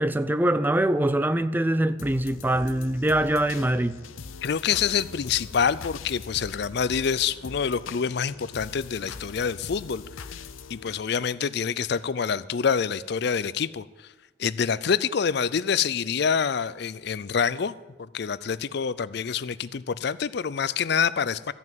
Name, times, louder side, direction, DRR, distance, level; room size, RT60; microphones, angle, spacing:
voice 1, 0.0-4.0, right 1 dB, 10° right, 0.4 m, -23 dB
sound 1, 2.0-12.0 12.5-12.6, left 5 dB, 90° left, 0.7 m, -42 dB
voice 2, 4.4-10.0 10.7-13.8 14.4-21.5, left 6 dB, 55° left, 0.4 m, -26 dB
14.0 x 6.0 x 9.1 m
head